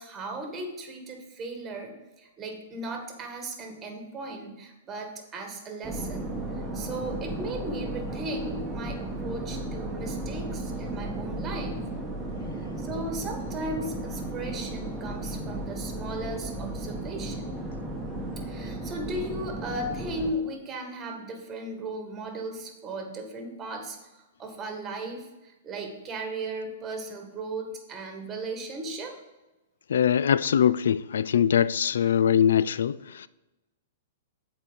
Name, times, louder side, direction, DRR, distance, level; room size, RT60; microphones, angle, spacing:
voice 1, 0.0-6.4 6.7-11.8 12.8-17.6 18.4-29.2, right 2 dB, 20° right, 1.8 m, -36 dB
sound 1, 5.8-20.3, right 1 dB, 5° right, 1.4 m, -34 dB
voice 2, 29.9-33.3, left 9 dB, 75° left, 0.3 m, -22 dB
7.5 x 4.7 x 6.9 m
hypercardioid pair, 120°, 0 cm